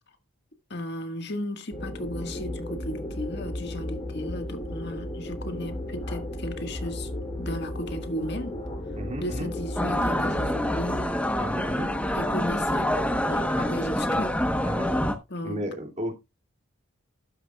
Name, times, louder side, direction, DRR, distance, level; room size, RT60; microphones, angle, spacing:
voice 1, 0.7-7.1 7.4-8.6 9.2-11.1 12.1-12.9 13.3-14.4 15.3-15.6, left 1 dB, 50° left, 1.7 m, -35 dB
sound 1, 1.7-11.0, left 1 dB, 25° left, 3.0 m, -34 dB
voice 2, 9.0-9.5 11.4-12.0 14.6-14.9 15.4-16.1, equal, 35° right, 2.6 m, -34 dB
sound 2, 9.8-15.1, left 1 dB, 5° left, 1.0 m, -26 dB
12.5 x 10.5 x 2.4 m
head